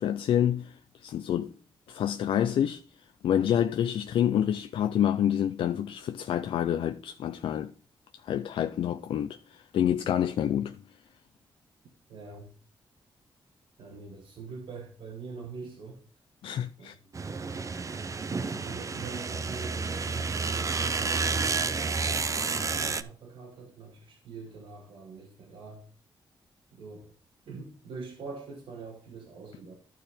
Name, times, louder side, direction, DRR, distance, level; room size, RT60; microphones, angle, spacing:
voice 1, 0.0-1.5 1.9-2.8 3.2-7.7 8.2-10.8 16.4-17.0, left 10 dB, 90° left, 0.5 m, -28 dB
voice 2, 12.1-12.5 13.8-16.0 16.8-17.0 18.3-21.2 22.0-25.8 26.7-27.1 27.5-29.7, right 4 dB, 85° right, 2.1 m, -44 dB
sound 1, 17.1-23.0, right 4 dB, 35° right, 0.7 m, -30 dB
12.0 x 4.6 x 5.0 m
cardioid pair, 90°, 9 cm